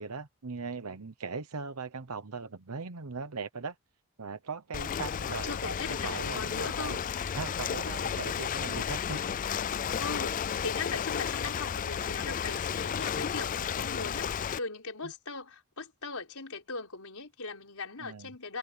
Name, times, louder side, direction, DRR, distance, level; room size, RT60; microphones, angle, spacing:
voice 1, 0.0-3.8 4.2-5.8 6.0-7.0 7.3-9.2 18.0-18.3, right 4 dB, 85° right, 1.0 m, -39 dB
Ocean, 4.7-14.6, left 8 dB, 35° left, 0.3 m, -33 dB
voice 2, 5.2-7.0 10.0-14.3 14.6-18.6, left 4 dB, 80° left, 4.3 m, -39 dB
head